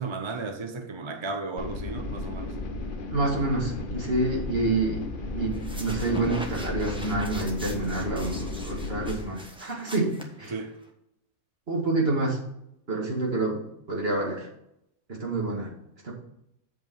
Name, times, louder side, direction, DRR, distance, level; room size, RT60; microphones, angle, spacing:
voice 1, 0.0-2.6 10.5-10.7, right 3 dB, 30° right, 6 dB, 0.6 m, -34 dB
sound 1, 1.6-9.2, left 2 dB, 45° left, 1.0 m, -34 dB
voice 2, 3.1-10.5 11.7-12.4 12.9-14.5 15.1-15.7 16.0-16.1, right 2 dB, 45° right, -2 dB, 2.4 m, -28 dB
sound 2, 5.5-10.9, equal, 5° right, 1.1 m, -41 dB
7.8 x 5.3 x 5.5 m, 0.79 s
omnidirectional pair, 1.4 m